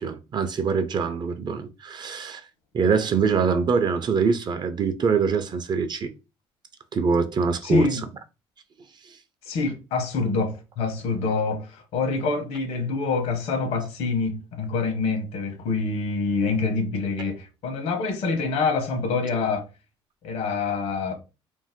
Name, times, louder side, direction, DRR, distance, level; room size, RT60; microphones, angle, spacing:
voice 1, 0.0-2.4 2.7-6.1 6.9-8.0, right 5 dB, 40° right, 0.5 m, -24 dB
voice 2, 7.6-8.0 9.5-19.7 20.2-21.1, left 4 dB, 80° left, 0.8 m, -26 dB
2.6 x 2.1 x 3.5 m
supercardioid pair, 85°, 11 cm